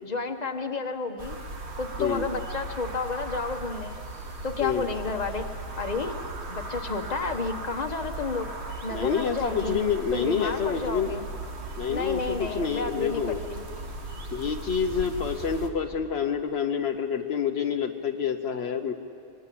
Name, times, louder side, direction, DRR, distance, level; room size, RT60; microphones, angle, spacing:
voice 1, 0.0-1.4 1.8-4.0 4.4-5.5 5.8-6.2 6.5-8.5 8.8-9.8 10.1-11.3 11.9-13.6, left 4 dB, 40° left, 5 dB, 1.4 m, -31 dB
sound 1, 1.2-15.7, right 2 dB, 80° right, 2.0 m, -37 dB
voice 2, 8.9-11.1 11.8-13.4 14.3-19.2, left 7 dB, 70° left, 5 dB, 1.1 m, -28 dB
26.0 x 20.5 x 8.6 m, 2.6 s
omnidirectional pair, 1.1 m